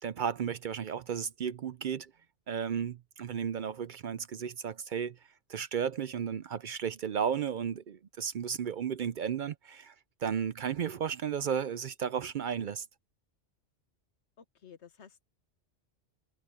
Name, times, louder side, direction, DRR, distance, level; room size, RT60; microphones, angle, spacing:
voice 1, 0.0-2.1 2.5-5.2 5.5-9.9 10.2-12.9, right 7 dB, 55° right, 0.6 m, -34 dB
voice 2, 14.4-15.3, left 7 dB, 85° left, 1.4 m, -54 dB
omnidirectional pair, 1.1 m